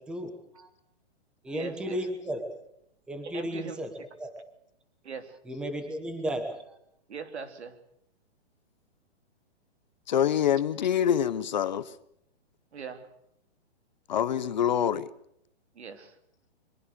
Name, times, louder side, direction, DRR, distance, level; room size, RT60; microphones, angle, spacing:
voice 1, 0.1-0.7 1.4-2.5 3.1-3.9 4.2-4.3 5.5-6.5, equal, 5° right, 1.3 m, -34 dB
voice 2, 1.5-2.1 3.3-3.8 5.0-5.4 7.1-7.8 12.7-13.1 15.7-16.2, right 5 dB, 75° right, 3.4 m, -40 dB
voice 3, 10.1-11.9 14.1-15.1, left 9 dB, 40° left, 0.8 m, -25 dB
23.0 x 22.5 x 6.7 m
hypercardioid pair, 170°, 33 cm